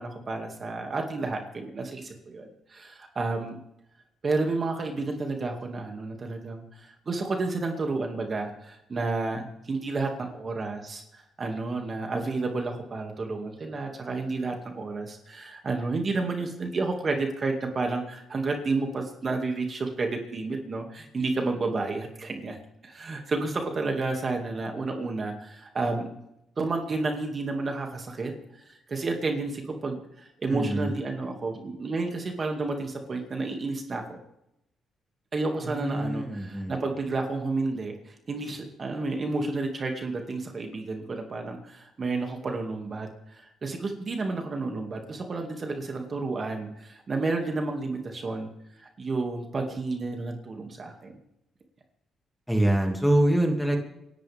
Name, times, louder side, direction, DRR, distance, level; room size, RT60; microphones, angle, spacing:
voice 1, 0.0-3.6 4.2-22.6 22.8-26.1 26.6-28.3 28.7-34.2 35.3-48.5 48.8-51.1, right 3 dB, 40° right, 3 dB, 2.4 m, -31 dB
voice 2, 30.5-30.9 35.6-36.7 52.5-53.8, right 1 dB, ahead, 2 dB, 2.5 m, -25 dB
28.0 x 11.5 x 3.6 m, 0.84 s
cardioid pair, 90°, 0 cm